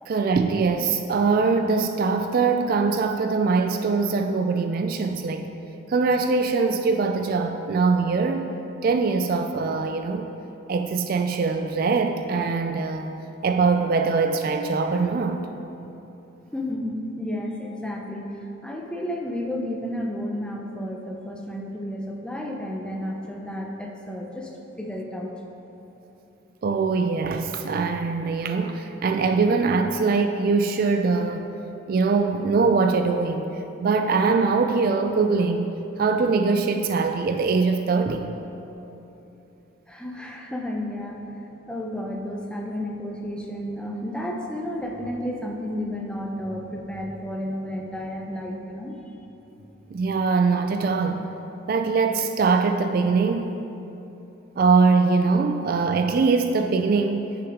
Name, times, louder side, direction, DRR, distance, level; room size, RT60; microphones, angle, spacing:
voice 1, 0.1-5.5 5.9-8.5 8.8-10.3 10.7-13.2 13.4-15.5 26.6-31.5 31.9-33.5 33.8-35.7 36.0-38.3 49.9-51.2 51.7-53.5 54.6-57.3, right 4 dB, 45° right, 5 dB, 0.3 m, -22 dB
voice 2, 16.5-18.4 18.6-24.5 24.8-25.4 39.9-41.2 41.7-49.0, left 1 dB, 5° left, 0 dB, 0.5 m, -32 dB
9.7 x 5.9 x 3.6 m, 3.0 s
head